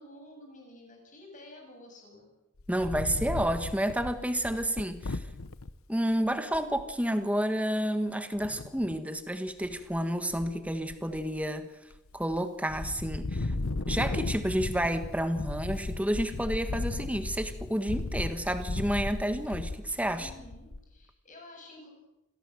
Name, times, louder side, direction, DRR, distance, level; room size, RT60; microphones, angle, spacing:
voice 1, 0.0-2.3 20.1-21.9, left 1 dB, 35° left, 2 dB, 7.7 m, -50 dB
Wind, 2.6-5.7 6.2-6.3 6.5-6.9 8.4-9.0 9.5-10.0 10.3-11.5 11.9-12.4 12.7-20.9, left 2 dB, 70° left, 0.9 m, -36 dB
voice 2, 2.7-5.2 5.9-11.7 12.1-13.5 13.9-20.3, equal, 5° right, 8 dB, 1.6 m, -30 dB
27.0 x 17.5 x 7.7 m, 0.94 s
head